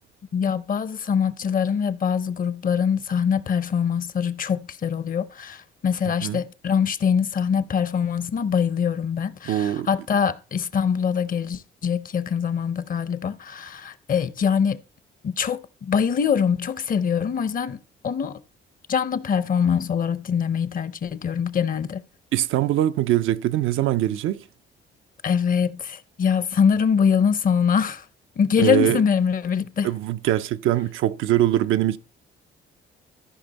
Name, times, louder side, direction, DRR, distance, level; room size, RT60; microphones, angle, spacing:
voice 1, 0.3-14.8 15.2-17.8 18.0-18.4 18.9-22.0 25.2-28.0 28.4-29.9, left 7 dB, 45° left, 0.6 m, -23 dB
voice 2, 9.5-9.9 22.3-24.4 28.6-29.0 29.8-32.0, right 13 dB, 90° right, 0.5 m, -22 dB
14.0 x 5.2 x 4.0 m
cardioid pair, 90°, 20 cm